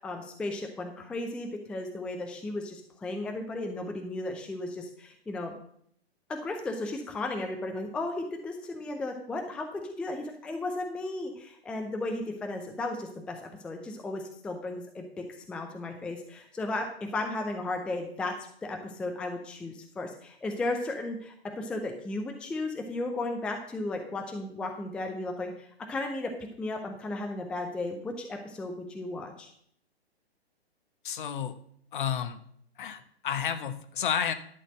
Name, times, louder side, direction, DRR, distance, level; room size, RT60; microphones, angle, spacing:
voice 1, 0.0-5.5 6.3-26.3 26.6-29.5, left 2 dB, 5° left, 4 dB, 0.5 m, -35 dB
voice 2, 31.0-31.6 31.9-32.4 32.8-34.3, left 8 dB, 50° left, 11 dB, 1.0 m, -31 dB
11.0 x 4.1 x 7.7 m, 0.65 s
figure-of-eight pair, 120°, 32 cm